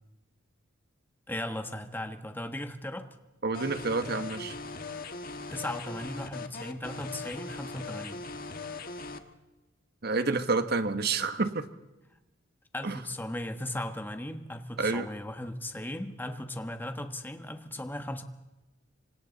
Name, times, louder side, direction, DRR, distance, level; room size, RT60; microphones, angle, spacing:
voice 1, 1.3-3.1 5.5-8.2 12.7-18.2, left 1 dB, 10° left, 7 dB, 1.3 m, -37 dB
voice 2, 3.4-4.5 10.0-11.6 12.8-13.0 14.8-15.1, right 3 dB, 50° right, 9 dB, 1.3 m, -29 dB
sound 1, 3.5-9.2, left 3 dB, 45° left, 1.3 m, -40 dB
26.0 x 25.5 x 4.1 m, 1.0 s
head